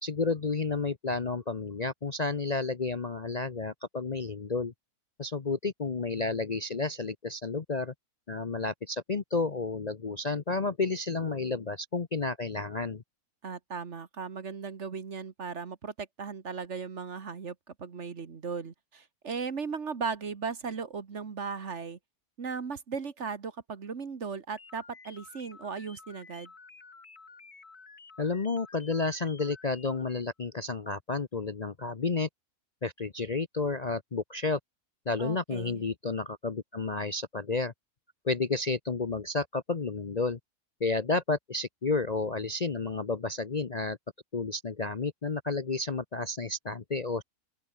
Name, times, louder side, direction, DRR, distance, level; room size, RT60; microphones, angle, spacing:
voice 1, 0.0-4.7 5.2-7.9 8.3-13.0 28.2-32.3 32.8-34.6 35.1-37.7 38.2-40.4 40.8-44.0 44.3-47.2, left 3 dB, 35° left, 0.8 m, -31 dB
voice 2, 13.4-22.0 22.4-26.5 35.2-35.8, right 5 dB, 50° right, 1.7 m, -37 dB
sound 1, 24.5-30.3, left 4 dB, 80° left, 3.5 m, -52 dB
omnidirectional pair, 1.6 m